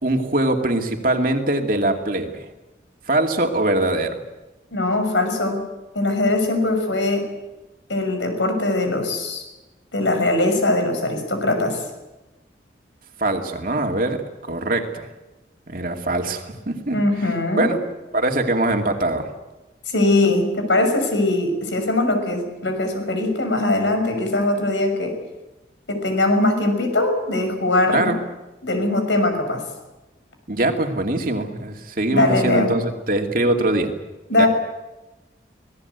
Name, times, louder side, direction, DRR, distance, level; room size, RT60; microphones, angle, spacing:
voice 1, 0.0-2.5 3.1-4.2 13.2-15.1 15.7-17.0 17.6-17.8 18.1-19.3 27.9-28.2 30.5-33.9 34.4-34.5, right 2 dB, 50° right, 3 dB, 2.5 m, -22 dB
voice 2, 4.7-5.6 5.9-7.3 7.9-9.4 9.9-11.8 16.9-17.7 19.9-25.1 25.9-28.1 28.6-29.6 32.1-32.7 34.3-34.5, left 2 dB, 85° left, 5 dB, 6.0 m, -21 dB
25.5 x 18.5 x 8.1 m, 1.1 s
head